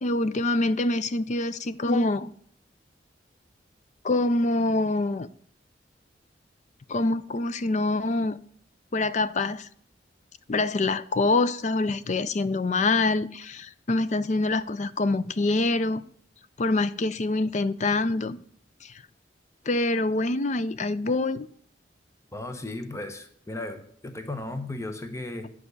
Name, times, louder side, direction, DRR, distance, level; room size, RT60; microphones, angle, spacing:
voice 1, 0.0-2.3 4.0-5.3 6.9-8.4 8.9-9.7 10.5-16.0 16.6-18.4 18.8-18.9 19.7-21.5, left 2 dB, 40° left, 0.5 m, -25 dB
voice 2, 22.3-25.5, left 2 dB, 15° left, 0.9 m, -35 dB
10.0 x 4.9 x 8.2 m
head